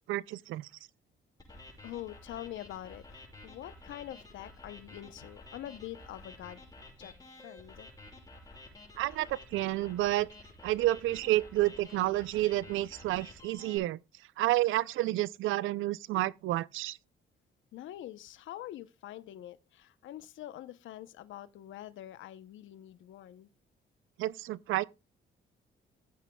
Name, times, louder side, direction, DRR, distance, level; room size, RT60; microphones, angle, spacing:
voice 1, 0.1-0.7 9.0-10.3 10.6-14.0 14.4-17.0 24.2-24.8, right 16 dB, 85° right, 0.5 m, -30 dB
sound 1, 1.4-13.8, left 2 dB, 20° left, 6.2 m, -52 dB
voice 2, 1.8-6.6 7.0-7.1 7.4-7.9 17.7-23.5, left 13 dB, 75° left, 0.8 m, -45 dB
17.0 x 8.4 x 2.3 m
cardioid pair, 90°, 20 cm